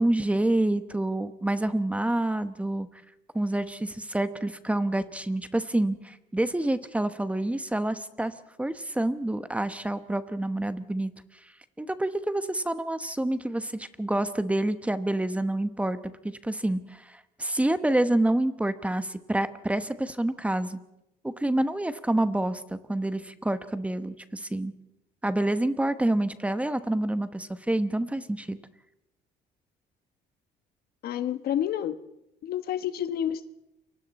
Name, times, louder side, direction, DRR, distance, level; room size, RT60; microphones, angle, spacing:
voice 1, 0.0-2.9 3.3-11.1 11.8-16.0 16.4-20.8 21.2-24.7 25.2-28.6, right 1 dB, 10° right, 11 dB, 1.1 m, -27 dB
voice 2, 31.0-31.9 32.4-33.5, left 10 dB, 65° left, 12 dB, 1.2 m, -29 dB
28.5 x 24.0 x 4.3 m, 0.89 s
cardioid pair, 110°, 17 cm